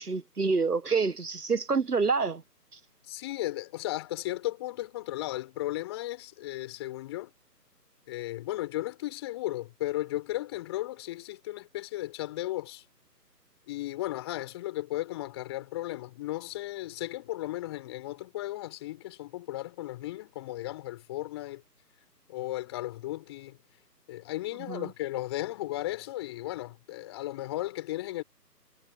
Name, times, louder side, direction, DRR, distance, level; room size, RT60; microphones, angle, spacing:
voice 1, 0.0-2.4 24.7-24.9, right 4 dB, 65° right, 1.3 m, -27 dB
voice 2, 3.1-7.3 8.1-12.8 13.7-21.6 22.3-23.6 24.1-28.2, left 16 dB, 15° left, 5.3 m, -35 dB
figure-of-eight pair, 155°, 49 cm